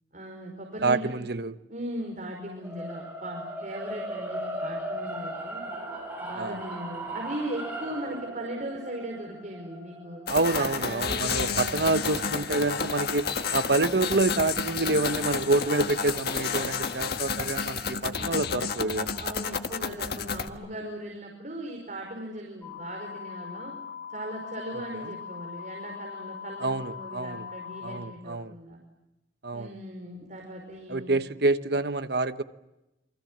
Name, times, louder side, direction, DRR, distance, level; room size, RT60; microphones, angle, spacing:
voice 1, 0.1-1.1 1.7-5.6 6.2-10.2 10.6-11.8 18.1-18.5 19.2-23.7 24.1-28.8 29.5-31.1, right 1 dB, 45° right, 5.1 m, -38 dB
voice 2, 0.8-1.5 6.4-6.6 10.3-19.2 25.0-25.1 26.6-27.5 27.8-28.5 29.4-29.7 30.9-32.4, right 2 dB, 60° right, 1.2 m, -27 dB
sound 1, 2.6-12.8, right 1 dB, 10° right, 7.0 m, -38 dB
sound 2, 10.3-20.5, left 5 dB, 60° left, 1.6 m, -31 dB
sound 3, 22.6-28.0, left 7 dB, 10° left, 1.6 m, -41 dB
28.5 x 24.5 x 7.5 m
head